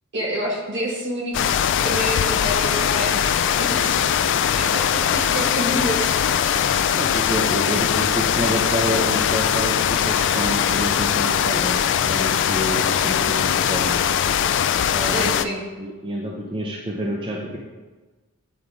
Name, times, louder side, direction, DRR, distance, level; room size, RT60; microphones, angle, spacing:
voice 1, 0.1-1.4 1.8-4.0 4.6-6.5 15.1-15.6, equal, 55° right, -3 dB, 1.8 m, -28 dB
sound 1, 1.3-15.5, left 9 dB, 55° left, 0.3 m, -21 dB
voice 2, 7.0-14.0 14.9-15.5 15.8-17.6, equal, 20° right, -2 dB, 0.6 m, -28 dB
9.3 x 3.7 x 4.8 m, 1.3 s
head